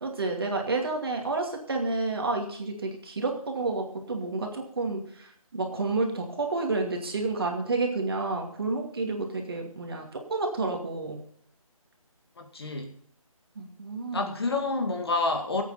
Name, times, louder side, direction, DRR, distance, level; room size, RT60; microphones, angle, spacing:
voice 1, 0.0-11.2 13.6-14.3, right 3 dB, 45° right, 2 dB, 2.5 m, -30 dB
voice 2, 12.4-12.9 14.1-15.6, left 3 dB, 45° left, 3 dB, 2.1 m, -28 dB
18.5 x 8.5 x 5.1 m, 0.62 s
figure-of-eight pair, 170°, 18 cm